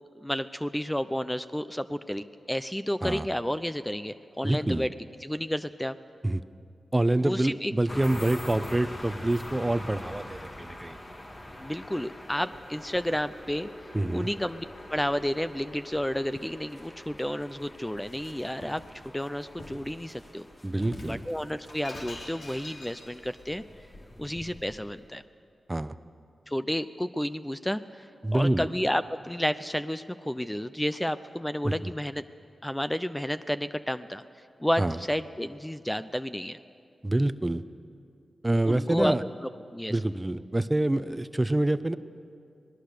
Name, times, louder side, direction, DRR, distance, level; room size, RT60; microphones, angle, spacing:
voice 1, 0.2-4.9 5.2-6.0 7.2-7.7 11.6-13.7 14.1-14.6 14.9-18.8 19.1-20.5 21.0-23.6 24.2-25.2 26.5-32.2 32.6-34.2 34.6-36.6 38.6-39.1 39.4-40.0, equal, 10° left, 12 dB, 0.7 m, -31 dB
voice 2, 4.4-4.9 6.2-6.4 6.9-11.0 13.9-14.3 20.6-21.2 25.7-26.0 28.2-28.7 31.6-31.9 34.8-35.0 37.0-37.6 38.4-39.2 39.9-42.0, right 1 dB, 20° right, 13 dB, 0.8 m, -26 dB
sound 1, 7.9-25.1, left 1 dB, 40° left, 3.1 m, -44 dB
Shatter, 18.0-18.9 19.6-19.9 20.8-23.4, left 1 dB, 60° left, 3.7 m, -44 dB
26.0 x 19.0 x 6.7 m, 2.4 s
cardioid pair, 45°, 0 cm